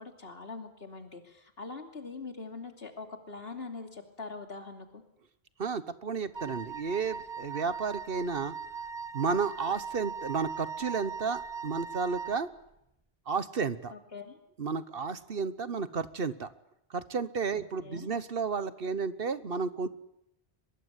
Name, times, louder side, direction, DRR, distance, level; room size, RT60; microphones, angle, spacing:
voice 1, 0.0-5.0 13.9-14.4 17.5-18.1, left 4 dB, 65° left, 5 dB, 3.0 m, -43 dB
voice 2, 5.6-8.5 9.1-12.5 13.3-13.9 14.6-16.5 16.9-19.9, right 5 dB, 60° right, 14 dB, 1.3 m, -32 dB
Wind instrument woodwind instrument, 6.3-12.4, right 6 dB, 25° right, 1.0 m, -40 dB
23.5 x 22.0 x 8.2 m, 0.79 s
omnidirectional pair, 1.1 m